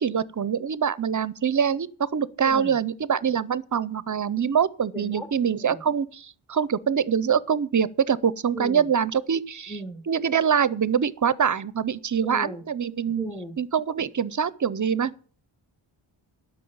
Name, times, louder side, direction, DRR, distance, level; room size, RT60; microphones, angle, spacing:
voice 1, 0.0-13.2 13.6-15.1, right 7 dB, 40° right, 0.6 m, -24 dB
voice 2, 4.9-5.3 5.6-5.8 8.5-8.9 9.7-10.0 12.2-12.6 13.2-13.6, equal, ahead, 1.1 m, -36 dB
11.5 x 6.0 x 8.6 m
wide cardioid pair, 115°, 50 cm